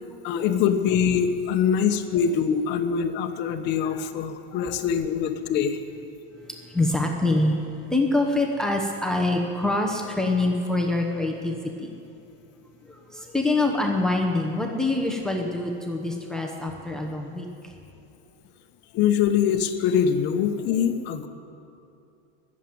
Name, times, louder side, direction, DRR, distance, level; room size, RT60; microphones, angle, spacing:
voice 1, 0.2-5.8 18.9-21.3, left 8 dB, 40° left, 6 dB, 1.0 m, -23 dB
voice 2, 6.5-11.9 12.9-17.5, left 2 dB, ahead, 1 dB, 0.9 m, -25 dB
20.0 x 7.5 x 9.3 m, 2.6 s
supercardioid pair, 165°, 29 cm